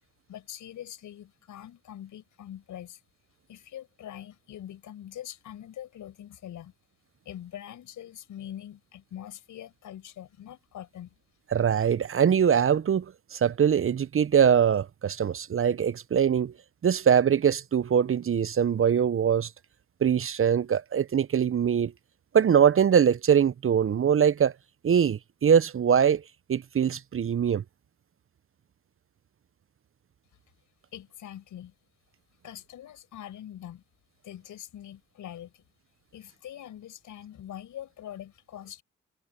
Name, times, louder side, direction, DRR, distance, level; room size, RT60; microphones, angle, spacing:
voice 1, 0.3-3.0 3.5-6.7 7.2-11.1 30.9-31.7 32.4-33.8 34.2-35.6 36.1-38.8, left 11 dB, 75° left, 6.5 m, -43 dB
voice 2, 11.5-13.1 13.3-16.5 16.8-19.5 20.0-21.9 22.3-24.5 24.8-26.2 26.5-27.6, right 8 dB, 45° right, 0.8 m, -22 dB
supercardioid pair, 45°, 30 cm